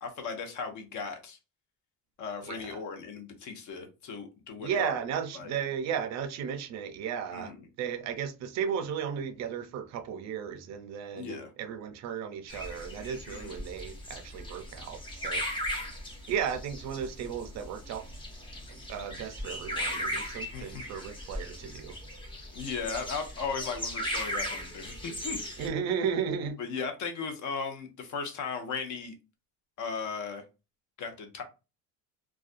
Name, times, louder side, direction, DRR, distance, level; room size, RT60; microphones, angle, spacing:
voice 1, 0.0-1.4 2.2-4.9 5.3-5.5 7.3-7.7 11.1-11.5 13.3-13.6 20.5-20.9 22.5-25.4 26.6-29.1 29.8-30.4 31.0-31.4, left 5 dB, 50° left, 0.7 m, -37 dB
voice 2, 2.4-2.8 4.6-15.4 16.3-18.0 18.7-22.0 25.6-26.6, right 7 dB, 45° right, 0.4 m, -35 dB
sound 1, 12.5-25.7, equal, 15° left, 0.6 m, -38 dB
2.4 x 2.2 x 2.4 m
cardioid pair, 140°, 40 cm